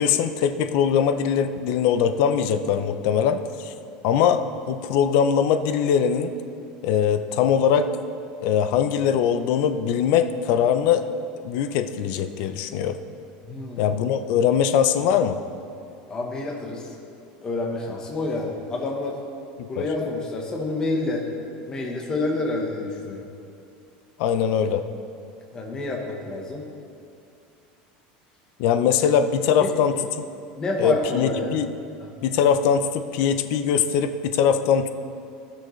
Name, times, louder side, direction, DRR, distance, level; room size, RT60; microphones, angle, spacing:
voice 1, 0.0-3.7 4.0-4.4 4.7-6.3 6.8-7.9 8.4-11.0 11.4-13.0 13.8-15.4 19.6-19.8 24.2-24.8 28.6-30.0 30.8-31.7 32.2-34.9, left 8 dB, 60° left, 9 dB, 0.5 m, -21 dB
voice 2, 13.4-13.9 16.1-16.9 17.4-19.2 19.7-21.2 21.7-23.2 25.5-26.6 29.6-29.7 30.6-31.6 32.0-32.1, left 2 dB, 20° left, -1 dB, 1.0 m, -28 dB
16.0 x 6.4 x 3.2 m, 2.5 s
cardioid pair, 160°, 4 cm